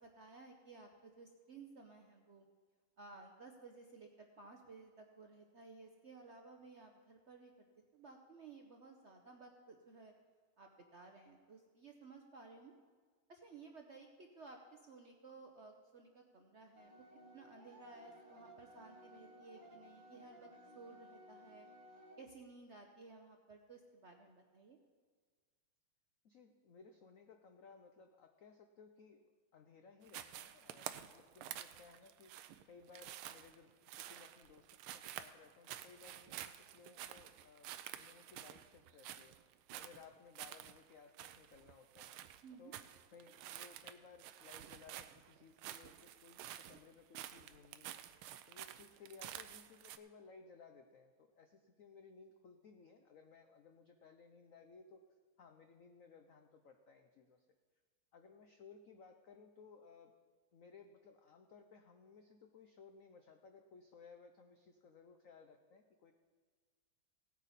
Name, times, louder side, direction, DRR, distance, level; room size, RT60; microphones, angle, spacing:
voice 1, 0.0-2.5 3.0-7.7 7.9-10.1 10.6-12.8 13.3-16.9 17.3-21.7 22.2-24.8 42.4-42.7, right 3 dB, 65° right, 3 dB, 0.7 m, -57 dB
sound 1, 16.7-22.2, equal, 45° right, 1.7 m, -58 dB
voice 2, 26.2-39.4 39.7-42.1 42.6-48.0 48.5-55.0 55.4-57.5 58.1-60.1 60.5-66.1, left 5 dB, 85° left, 5 dB, 0.7 m, -60 dB
sound 2, 30.1-50.0, right 12 dB, 80° right, 1.5 m, -50 dB
17.5 x 9.1 x 4.2 m, 1.5 s
omnidirectional pair, 2.3 m